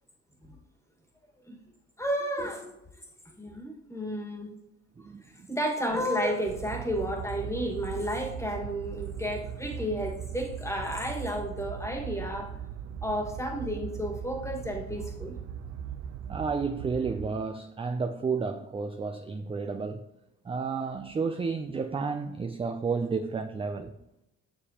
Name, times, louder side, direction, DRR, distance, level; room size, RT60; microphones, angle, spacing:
voice 1, 2.0-2.7 3.4-4.5 5.5-12.5 13.0-15.3, equal, 10° left, 1.7 m, -32 dB
voice 2, 5.0-5.5 16.3-20.1 20.4-23.9, right 5 dB, 20° right, 0.4 m, -31 dB
sound 1, 6.5-17.3, right 8 dB, 60° right, 0.6 m, -39 dB
7.2 x 6.7 x 2.9 m
cardioid pair, 90°, 30 cm